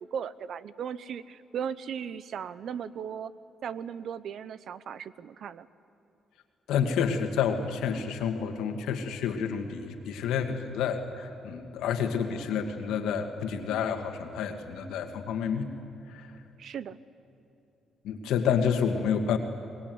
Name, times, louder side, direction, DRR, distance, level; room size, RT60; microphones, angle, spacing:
voice 1, 0.1-3.3 3.6-5.7 16.6-17.0, right 8 dB, 65° right, 16 dB, 0.8 m, -37 dB
voice 2, 6.7-15.7 16.1-16.3 18.0-19.4, left 7 dB, 90° left, 6 dB, 2.2 m, -29 dB
23.0 x 21.0 x 9.6 m, 3.0 s
cardioid pair, 90°, 0 cm